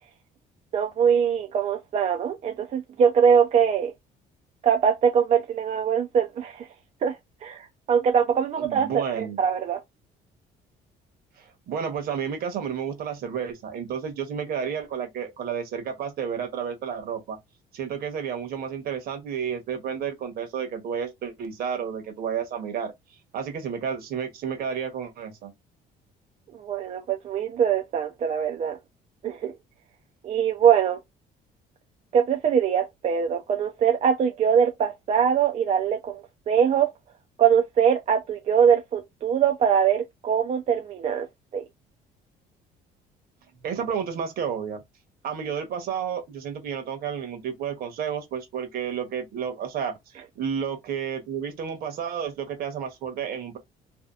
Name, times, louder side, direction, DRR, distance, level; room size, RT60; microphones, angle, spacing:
voice 1, 0.7-3.9 4.6-6.7 7.0-7.2 7.4-9.8 26.5-28.8 29.2-29.5 30.2-31.0 32.1-36.9 37.4-41.3 41.5-41.6, right 7 dB, 40° right, 0.4 m, -22 dB
voice 2, 8.6-9.4 11.4-17.4 17.7-22.9 23.3-25.5 43.6-44.8 45.2-50.0 50.4-53.6, right 7 dB, 65° right, 1.0 m, -31 dB
2.7 x 2.2 x 2.3 m
cardioid pair, 110°, 17 cm